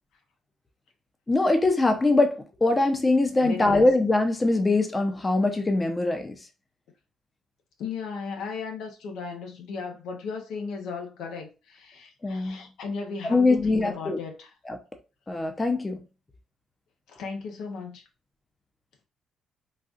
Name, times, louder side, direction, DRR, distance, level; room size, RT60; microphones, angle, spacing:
voice 1, 1.3-6.4 12.2-12.6 13.2-14.2 14.7-14.8 15.3-16.0, left 2 dB, 20° left, 0.7 m, -22 dB
voice 2, 3.4-3.9 7.8-14.5 17.1-18.0, left 5 dB, 85° left, 0.8 m, -36 dB
4.1 x 2.4 x 2.5 m
cardioid pair, 90°, 0 cm